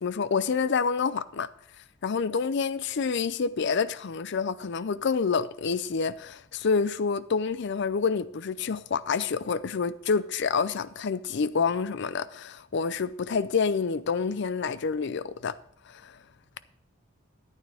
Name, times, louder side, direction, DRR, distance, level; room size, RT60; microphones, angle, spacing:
voice 1, 0.0-1.5 2.0-15.6 15.9-16.2, left 5 dB, 60° left, 0.5 m, -28 dB
13.5 x 9.1 x 3.4 m
head